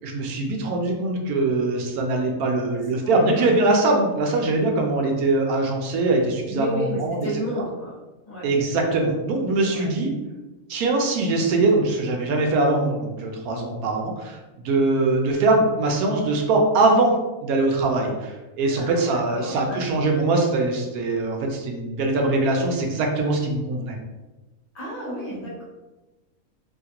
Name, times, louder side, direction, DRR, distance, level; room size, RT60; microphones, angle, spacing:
voice 1, 0.0-7.3 8.4-10.1 10.7-17.2 17.4-24.0, right 2 dB, 85° right, 1 dB, 1.1 m, -22 dB
voice 2, 2.7-3.5 6.5-7.9 8.2-8.5 9.6-9.9 18.6-20.0 24.7-25.6, equal, 40° left, -7 dB, 1.0 m, -32 dB
2.9 x 2.4 x 2.8 m, 1.1 s
omnidirectional pair, 1.5 m